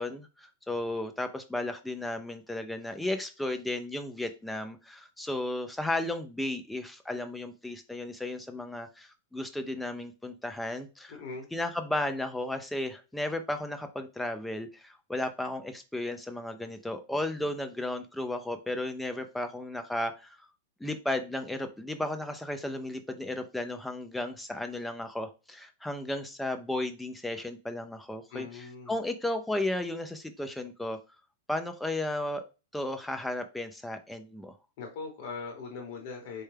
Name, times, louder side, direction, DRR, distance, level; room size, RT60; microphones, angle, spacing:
voice 1, 0.0-11.2 11.5-20.4 20.8-31.0 31.5-32.4 32.7-34.5, left 1 dB, 5° left, 7 dB, 0.3 m, -34 dB
voice 2, 11.1-11.5 28.3-28.9 34.8-36.4, left 4 dB, 40° left, 1 dB, 0.9 m, -40 dB
4.4 x 2.2 x 3.3 m, 0.30 s
supercardioid pair, 170°, 0 cm